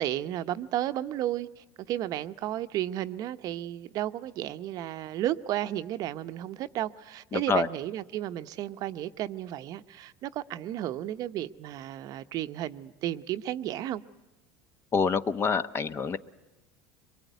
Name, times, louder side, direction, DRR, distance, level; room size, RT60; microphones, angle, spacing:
voice 1, 0.0-14.0, right 13 dB, 50° right, 0.8 m, -33 dB
voice 2, 7.3-7.7 14.9-16.2, left 5 dB, 30° left, 0.9 m, -26 dB
23.5 x 22.5 x 9.2 m
supercardioid pair, 115°, 8 cm